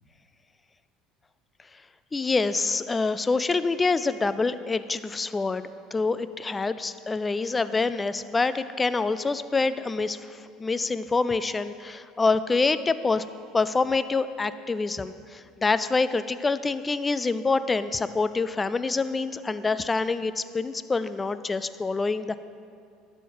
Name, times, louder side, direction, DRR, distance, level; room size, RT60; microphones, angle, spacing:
voice 1, 2.1-5.6 5.9-13.2 13.5-22.4, left 3 dB, 15° left, 14 dB, 0.3 m, -26 dB
11.5 x 5.4 x 4.7 m, 2.4 s
supercardioid pair, 120°, 0 cm